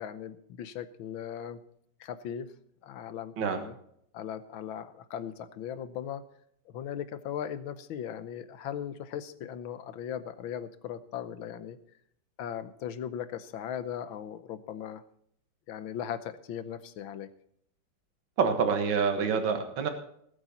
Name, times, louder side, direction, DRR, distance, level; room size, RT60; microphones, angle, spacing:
voice 1, 0.0-1.6 2.0-2.5 2.8-3.8 4.1-6.2 6.7-11.8 12.4-15.0 15.7-17.3, left 9 dB, 80° left, 13 dB, 1.7 m, -38 dB
voice 2, 18.4-19.9, right 6 dB, 75° right, 6 dB, 2.2 m, -27 dB
19.0 x 8.1 x 4.2 m, 0.70 s
omnidirectional pair, 2.2 m